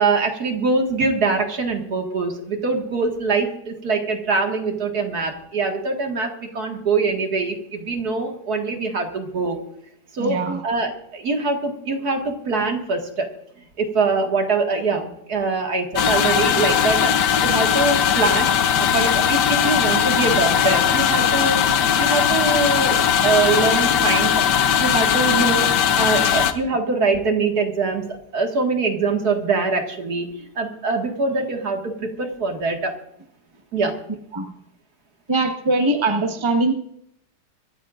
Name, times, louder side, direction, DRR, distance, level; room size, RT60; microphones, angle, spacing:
voice 1, 0.0-9.6 10.1-13.3 13.8-17.1 17.4-18.5 18.8-21.6 22.0-23.0 23.2-24.4 24.8-33.0 33.7-33.9, right 4 dB, 70° right, 3 dB, 2.4 m, -23 dB
voice 2, 10.2-10.6 34.3-34.5 35.3-36.7, right 2 dB, 20° right, 4 dB, 1.4 m, -21 dB
sound 1, 16.0-26.5, left 8 dB, 85° left, 1.5 m, -19 dB
24.5 x 14.0 x 2.5 m, 0.74 s
omnidirectional pair, 1.8 m